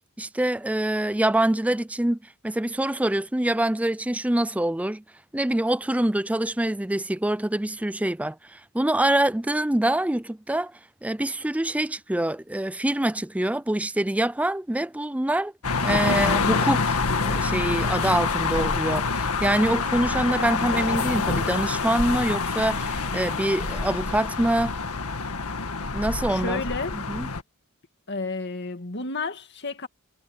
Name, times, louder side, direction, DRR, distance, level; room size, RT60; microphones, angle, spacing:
voice 1, 0.2-2.2 2.4-5.0 5.3-10.7 11.0-15.5 15.8-16.9 17.2-24.7 25.9-26.6 27.1-27.3, right 1 dB, 5° right, 0.4 m, -25 dB
sound 1, 15.6-27.4, left 4 dB, 80° left, 1.9 m, -26 dB
voice 2, 26.3-27.0 28.1-29.9, left 3 dB, 50° left, 2.2 m, -31 dB
head